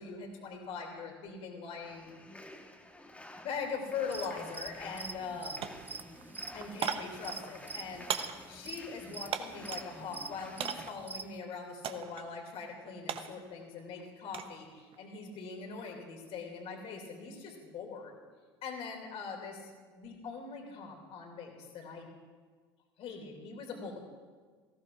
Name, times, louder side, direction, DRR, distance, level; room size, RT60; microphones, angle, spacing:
voice 1, 0.0-2.1 3.4-5.7 6.5-8.1 8.5-18.2 18.6-22.1 23.0-24.0, left 5 dB, 50° left, 2 dB, 2.6 m, -42 dB
sound 1, 1.8-10.9, left 1 dB, 10° left, 1.3 m, -51 dB
sound 2, 4.1-11.3, right 3 dB, 15° right, 0.5 m, -44 dB
sound 3, 4.4-4.5 4.8-5.3 5.6-9.9 10.6-11.1 11.8-12.3 12.6-14.6 14.9-15.4, right 8 dB, 45° right, 0.9 m, -39 dB
18.5 x 15.0 x 2.5 m, 1.5 s
hypercardioid pair, 70°, 13 cm